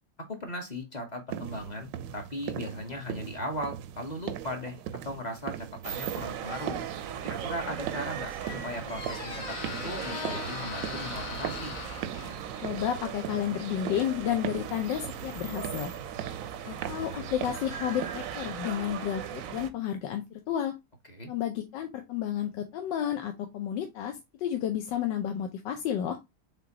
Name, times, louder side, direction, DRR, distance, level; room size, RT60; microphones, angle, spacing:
voice 1, 0.3-4.8 5.0-6.8 7.2-11.8 21.1-21.3, left 1 dB, 30° left, 4 dB, 0.9 m, -38 dB
sound 1, 1.3-18.6, right 10 dB, 85° right, 1.2 m, -40 dB
sound 2, 5.8-19.7, right 9 dB, 70° right, 0.8 m, -39 dB
Squeak, 7.8-16.4, left 5 dB, 55° left, 1.3 m, -42 dB
voice 2, 12.6-15.9 16.6-20.7 21.3-26.2, left 10 dB, 85° left, 5 dB, 1.4 m, -31 dB
5.0 x 3.7 x 2.8 m, 0.21 s
omnidirectional pair, 1.9 m